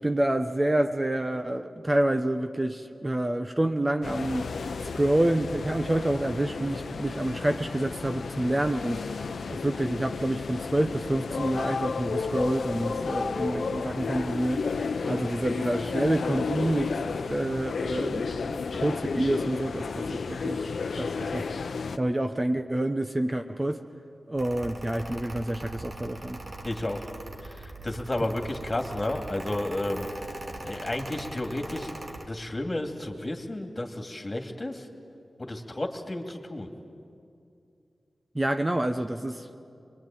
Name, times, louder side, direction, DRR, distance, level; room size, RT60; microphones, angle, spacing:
voice 1, 0.0-4.6 4.9-17.0 17.3-20.7 21.0-21.5 22.0-23.9 24.3-26.4 38.3-39.6, right 1 dB, 20° right, 6 dB, 0.9 m, -28 dB
sound 1, 4.0-22.0, left 4 dB, 85° left, 0.8 m, -32 dB
Mechanical fan, 24.4-32.3, right 2 dB, 45° right, 2.3 m, -41 dB
voice 2, 26.6-27.0 27.4-30.1 30.6-31.9 32.3-34.9 35.4-36.7, left 1 dB, 30° left, 3 dB, 2.6 m, -32 dB
25.0 x 22.0 x 9.1 m, 2.5 s
wide cardioid pair, 80°, 0 cm